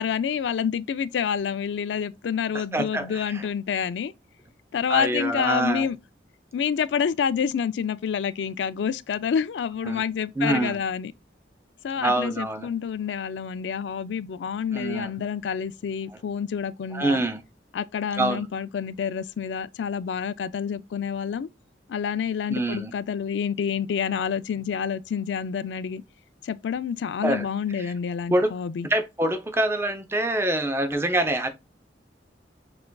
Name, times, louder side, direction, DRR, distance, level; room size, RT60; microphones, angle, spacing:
voice 1, 0.0-4.1 4.7-6.0 6.5-11.1 11.8-17.2 17.7-21.5 21.9-26.0 26.4-28.9, left 7 dB, 80° left, 0.3 m, -28 dB
voice 2, 2.7-3.4 4.9-5.9 9.8-10.0 10.4-10.8 12.0-12.7 14.7-15.1 16.1-16.2 16.9-17.4 18.2-18.4 22.5-22.9 27.2-27.5 27.8-27.9 28.3-28.5 28.9-31.5, right 1 dB, 15° right, 0.6 m, -25 dB
6.8 x 2.4 x 2.2 m
head